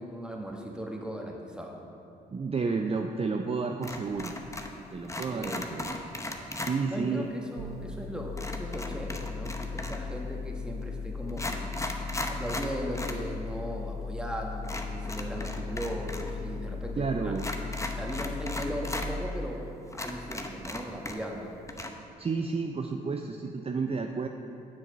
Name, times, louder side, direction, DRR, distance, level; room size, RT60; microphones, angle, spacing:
voice 1, 0.0-1.8 5.2-5.7 6.9-11.7 12.3-17.3 17.9-21.5, equal, 5° right, 0 dB, 1.5 m, -38 dB
voice 2, 2.3-4.3 4.9-6.0 6.6-7.2 17.0-17.5 22.2-24.3, right 4 dB, 30° right, 4 dB, 0.5 m, -31 dB
sound 1, 3.8-4.8 5.0-6.8 8.4-10.1 10.8-10.9 11.3-13.2 13.5-13.6 14.6-16.3 16.6-16.7 17.3-19.1 19.5-19.6 19.9-21.4 21.7-21.9, left 1 dB, 15° left, 0.9 m, -37 dB
sound 2, 7.6-19.0, left 4 dB, 60° right, 0.8 m, -37 dB
7.4 x 6.4 x 5.2 m, 2.7 s
hypercardioid pair, 45°, 20 cm